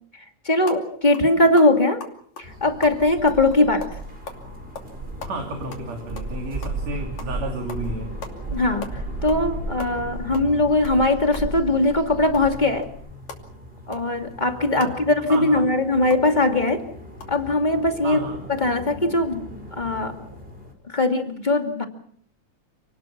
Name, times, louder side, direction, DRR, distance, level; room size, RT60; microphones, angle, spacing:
voice 1, 0.4-2.0 2.4-3.9 8.5-12.9 13.9-16.8 17.3-18.2 18.6-20.1 20.9-21.8, left 2 dB, 15° left, 4 dB, 2.2 m, -20 dB
sound 1, 0.6-0.8 1.1-1.3 1.6-4.4 4.8-4.9 5.2-6.8 7.2-7.4 7.7-7.9 8.2-8.4 8.6-9.5 9.7-12.0 12.3-16.3 16.7-16.8 17.1-17.2, left 5 dB, 70° left, 4.1 m, -40 dB
sound 2, 2.4-20.7, right 1 dB, 20° right, 4.7 m, -35 dB
voice 2, 5.2-8.1 14.8-14.9 15.3-15.7 18.0-18.5, right 1 dB, 60° right, 2 dB, 4.1 m, -32 dB
29.5 x 19.5 x 6.0 m, 0.63 s
omnidirectional pair, 3.4 m